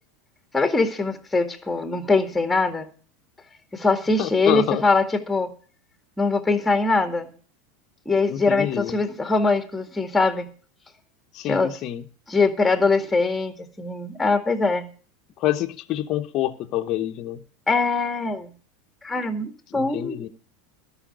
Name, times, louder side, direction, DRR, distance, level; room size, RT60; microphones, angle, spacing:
voice 1, 0.5-2.9 3.7-5.5 6.2-7.3 8.1-10.5 11.5-11.7 12.3-14.9 17.7-18.5 19.0-20.3, left 3 dB, 10° left, 6 dB, 2.0 m, -22 dB
voice 2, 4.2-4.8 8.3-8.9 11.3-12.0 15.4-17.4 19.7-20.3, left 13 dB, 50° left, 4 dB, 1.0 m, -27 dB
12.5 x 5.8 x 9.2 m, 0.41 s
supercardioid pair, 110°, 0 cm